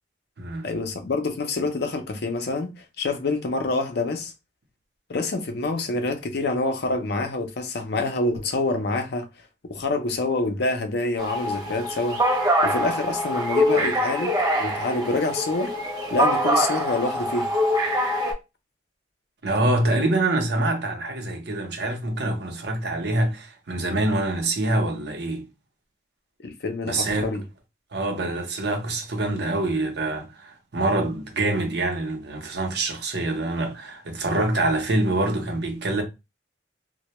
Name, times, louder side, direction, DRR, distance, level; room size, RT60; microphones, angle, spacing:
voice 1, 0.6-4.3 5.1-9.3 9.6-12.2 12.6-15.7 16.1-17.5 26.4-27.4, left 3 dB, 65° left, 0.5 m, -27 dB
sound 1, 11.2-18.3, equal, 20° right, 0.6 m, -24 dB
voice 2, 19.4-25.5 26.8-27.3 27.9-36.0, right 2 dB, 65° right, 0.7 m, -25 dB
2.1 x 2.1 x 2.8 m
head